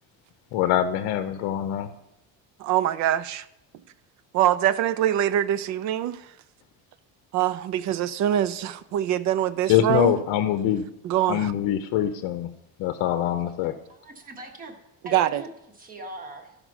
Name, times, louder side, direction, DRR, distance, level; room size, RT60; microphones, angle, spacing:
voice 1, 0.5-1.9 9.7-10.8 11.3-12.5 12.8-13.7, left 11 dB, 60° left, 0.7 m, -24 dB
voice 2, 2.6-3.4 4.3-6.2 7.3-10.2 11.0-11.5 15.1-15.4, right 11 dB, 50° right, 0.5 m, -24 dB
voice 3, 13.9-14.7 15.0-15.5 15.7-16.5, right 1 dB, 20° right, 1.4 m, -40 dB
13.0 x 5.1 x 6.1 m
cardioid pair, 175°, 37 cm